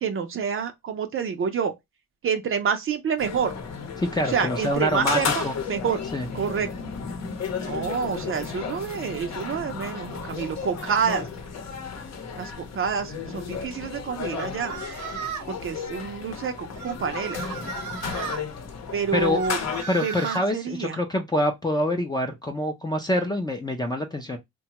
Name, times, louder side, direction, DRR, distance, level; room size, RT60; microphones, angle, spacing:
voice 1, 0.0-1.7 2.2-3.5 4.3-6.1 6.3-6.7 7.6-11.3 12.4-14.8 15.5-17.4 18.9-19.6 20.0-21.0, right 6 dB, 45° right, 0.5 m, -28 dB
sound 1, 3.2-19.8, left 6 dB, 60° left, 0.8 m, -33 dB
voice 2, 4.0-5.5 6.1-6.3 19.1-19.4 19.9-24.4, left 1 dB, 15° left, 0.5 m, -26 dB
Cry for help - Female, 14.3-15.6 16.8-18.4 19.3-20.4, right 6 dB, 75° right, 1.0 m, -36 dB
2.8 x 2.2 x 2.8 m
cardioid pair, 90°, 30 cm